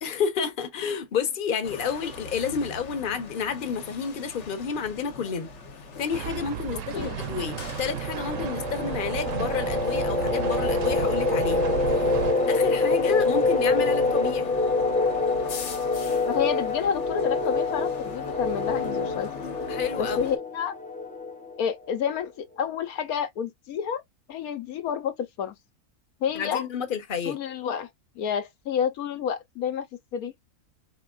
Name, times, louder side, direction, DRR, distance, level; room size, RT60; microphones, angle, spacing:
voice 1, 0.0-5.5 6.0-11.6 12.5-14.5 19.7-20.3 26.3-27.4, left 6 dB, 40° left, 1.1 m, -30 dB
sound 1, 1.6-20.4, left 5 dB, 55° left, 1.2 m, -40 dB
sound 2, 6.1-12.3, right 10 dB, 65° right, 0.9 m, -34 dB
voice 2, 6.7-7.2 16.3-19.5 20.0-20.7 21.6-24.0 24.3-25.5 26.2-26.6 27.3-27.9 28.2-29.8 30.1-30.3, left 8 dB, 75° left, 1.2 m, -29 dB
sound 3, 7.3-21.8, left 3 dB, 10° left, 0.5 m, -26 dB
5.1 x 3.6 x 2.4 m
omnidirectional pair, 1.6 m